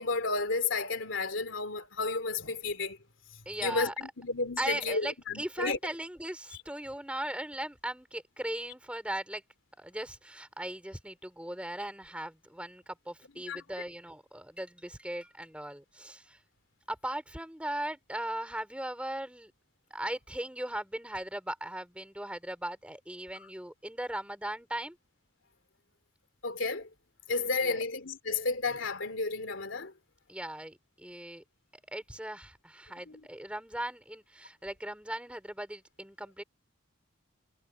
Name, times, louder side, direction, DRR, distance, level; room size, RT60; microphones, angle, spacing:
voice 1, 0.0-3.0 3.6-5.8 13.5-13.6 26.4-26.9 27.3-29.9 33.1-33.2, left 3 dB, 65° left, 3.2 m, -32 dB
voice 2, 3.4-3.9 4.6-9.4 9.8-16.4 16.9-19.5 19.9-25.0 27.6-27.8 30.3-31.4 31.9-36.4, right 1 dB, 5° right, 4.8 m, -38 dB
head